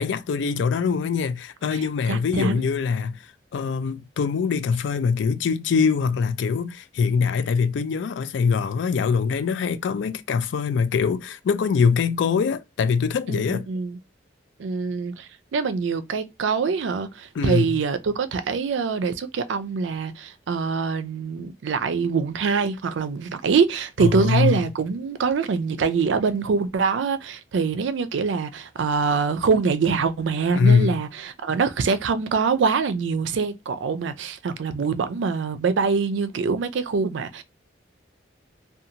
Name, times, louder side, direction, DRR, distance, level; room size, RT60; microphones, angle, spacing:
voice 1, 0.0-3.2 3.5-13.7 17.4-17.8 24.0-24.6 30.5-31.0, left 5 dB, 80° left, 0.3 m, -23 dB
voice 2, 2.1-2.7 13.3-14.0 14.6-37.4, right 5 dB, 85° right, 0.4 m, -24 dB
2.5 x 2.2 x 2.8 m
head